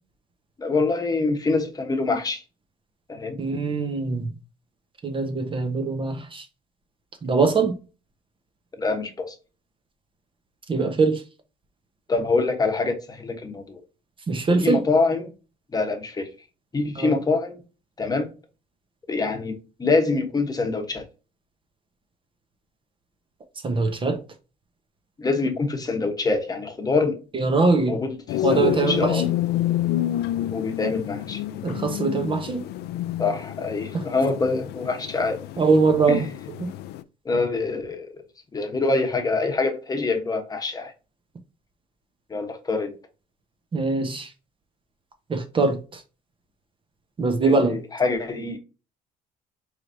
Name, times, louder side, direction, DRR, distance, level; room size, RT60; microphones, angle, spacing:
voice 1, 0.6-2.4 3.1-3.4 8.8-9.3 12.1-13.8 14.6-15.3 15.7-16.3 16.7-17.6 18.0-18.3 19.1-21.0 25.2-27.2 27.9-29.3 30.5-31.4 33.2-35.4 36.1-36.2 37.2-38.1 38.5-40.9 42.3-42.9 47.4-48.6, left 3 dB, 20° left, 1.0 m, -25 dB
voice 2, 3.4-4.3 5.0-6.5 7.2-7.7 10.7-11.2 14.3-14.8 17.0-17.2 23.6-24.2 27.3-27.9 28.4-29.2 31.6-32.6 33.9-34.0 35.6-36.3 36.6-36.7 43.7-44.3 45.3-46.0 47.2-47.8, right 4 dB, 30° right, 0.8 m, -22 dB
sound 1, 28.3-37.0, left 13 dB, 75° left, 0.4 m, -28 dB
4.7 x 3.3 x 2.6 m
cardioid pair, 110°, 17 cm